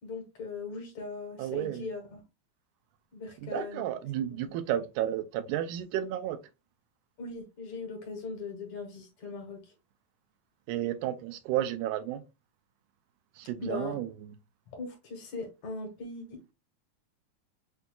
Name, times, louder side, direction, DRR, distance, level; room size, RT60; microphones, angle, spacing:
voice 1, 0.0-2.2 3.1-3.8 4.3-4.6 7.2-9.7 13.6-14.0 14.8-16.5, left 3 dB, 65° left, 2.6 m, -39 dB
voice 2, 1.4-1.9 3.4-6.4 10.7-12.2 13.4-14.1, right 11 dB, 85° right, 2.0 m, -32 dB
8.0 x 2.7 x 2.3 m
omnidirectional pair, 3.6 m